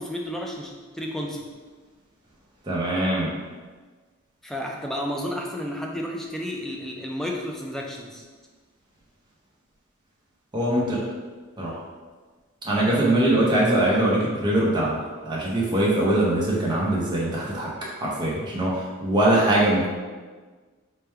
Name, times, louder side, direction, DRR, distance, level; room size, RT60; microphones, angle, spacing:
voice 1, 0.0-1.5 4.4-8.2, equal, ahead, 0 dB, 0.3 m, -32 dB
voice 2, 2.7-3.3 10.5-11.0 11.6-11.7 12.6-15.0 15.2-17.7 18.0-18.7 19.0-19.9, right 1 dB, 20° right, -6 dB, 0.8 m, -22 dB
3.3 x 2.2 x 4.4 m, 1.4 s
head